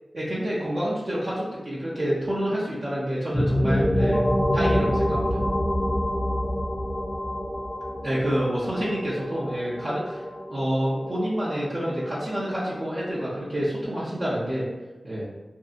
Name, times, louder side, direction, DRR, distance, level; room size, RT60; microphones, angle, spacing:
voice 1, 0.1-4.2 4.5-5.4 8.0-10.2 10.5-14.7 15.0-15.3, equal, 40° right, -8 dB, 0.6 m, -28 dB
sound 1, 3.3-12.9, equal, 20° left, 0.6 m, -27 dB
2.6 x 2.4 x 2.5 m, 1.1 s
wide cardioid pair, 80°, 0 cm